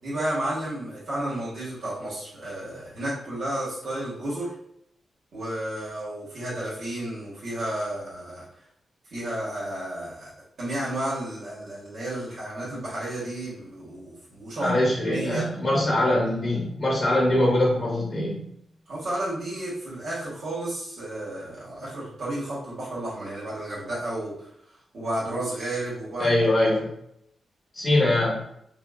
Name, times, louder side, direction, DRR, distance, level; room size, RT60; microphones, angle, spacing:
voice 1, 0.0-4.5 5.3-8.4 9.1-15.4 18.9-24.5 24.9-26.4, right 1 dB, 70° right, -8 dB, 1.1 m, -32 dB
voice 2, 14.6-18.4 26.2-26.9 27.7-28.4, left 1 dB, 40° left, -4 dB, 1.0 m, -22 dB
3.8 x 2.0 x 2.3 m, 0.72 s
cardioid pair, 90°, 0 cm